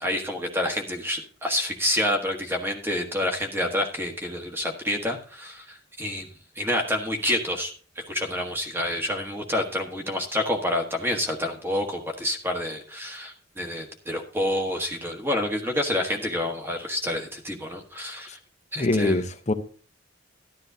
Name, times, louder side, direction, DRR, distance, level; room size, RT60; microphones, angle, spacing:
voice 1, 0.0-6.3 6.5-18.4 18.7-19.2, left 1 dB, 10° right, 1.3 m, -28 dB
voice 2, 18.8-19.5, left 2 dB, 35° left, 0.8 m, -24 dB
12.5 x 11.5 x 2.7 m
head